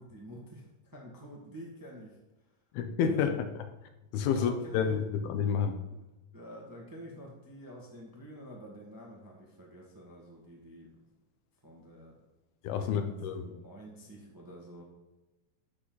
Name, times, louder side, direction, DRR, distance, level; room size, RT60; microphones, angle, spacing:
voice 1, 0.0-2.2 3.1-3.4 4.3-4.8 5.9-6.0 6.3-10.9 11.6-12.2 12.8-14.8, equal, 10° right, -2 dB, 0.8 m, -49 dB
voice 2, 2.7-3.4 4.1-5.8 12.6-13.6, left 7 dB, 85° left, 8 dB, 2.8 m, -29 dB
12.0 x 7.6 x 4.0 m, 1.1 s
omnidirectional pair, 4.3 m